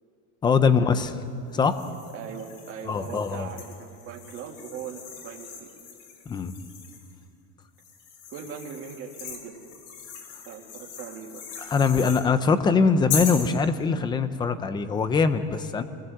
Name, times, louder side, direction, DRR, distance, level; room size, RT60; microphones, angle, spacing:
voice 1, 0.4-1.1 1.5-1.8 2.9-3.5 6.3-6.5 11.6-15.8, left 5 dB, 10° left, 11 dB, 0.6 m, -22 dB
sound 1, 1.6-7.2 7.8-12.3 13.1-13.5, left 7 dB, 75° left, 5.7 m, -39 dB
voice 2, 2.1-5.7 8.3-9.6 10.4-11.4, right 7 dB, 35° right, 0 dB, 2.4 m, -40 dB
27.5 x 19.5 x 7.9 m, 2.4 s
cardioid pair, 180°, 39 cm